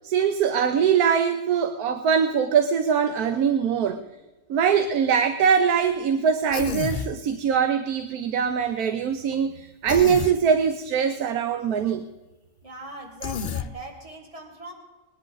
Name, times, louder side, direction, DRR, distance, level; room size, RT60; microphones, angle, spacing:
voice 1, 0.0-4.0 4.5-12.0, right 7 dB, 85° right, 10 dB, 1.3 m, -22 dB
Human voice, 6.5-7.1 9.9-10.4 13.2-13.7, left 6 dB, 50° left, 0.6 m, -29 dB
voice 2, 12.6-14.7, right 2 dB, 20° right, 0 dB, 2.5 m, -40 dB
21.0 x 10.5 x 3.9 m, 1.1 s
omnidirectional pair, 1.6 m